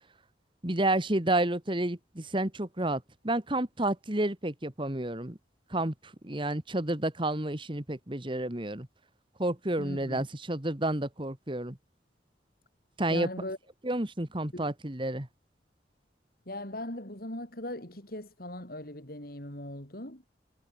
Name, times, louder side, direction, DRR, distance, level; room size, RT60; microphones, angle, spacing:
voice 1, 0.6-5.4 5.7-8.9 9.4-11.8 13.0-13.3 13.8-15.3, right 1 dB, 25° right, 1.9 m, -30 dB
voice 2, 9.8-10.2 13.1-13.6 14.5-14.7 16.5-20.2, left 1 dB, 55° left, 4.5 m, -39 dB
head